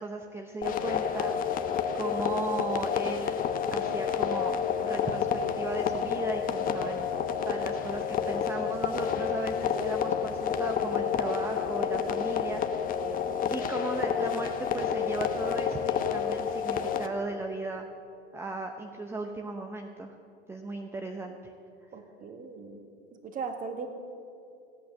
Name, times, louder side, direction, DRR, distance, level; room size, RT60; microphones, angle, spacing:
voice 1, 0.0-1.7 1.9-3.4 3.7-4.5 4.8-7.1 7.4-12.9 13.5-17.9 18.3-20.2 20.5-21.5, right 2 dB, 5° right, 4 dB, 0.7 m, -36 dB
sound 1, 0.6-17.1, left 7 dB, 25° left, 0.9 m, -29 dB
voice 2, 21.9-22.8 23.2-23.9, right 5 dB, 25° right, 5 dB, 1.8 m, -38 dB
16.0 x 8.6 x 6.9 m, 2.6 s
figure-of-eight pair, 95°, 34 cm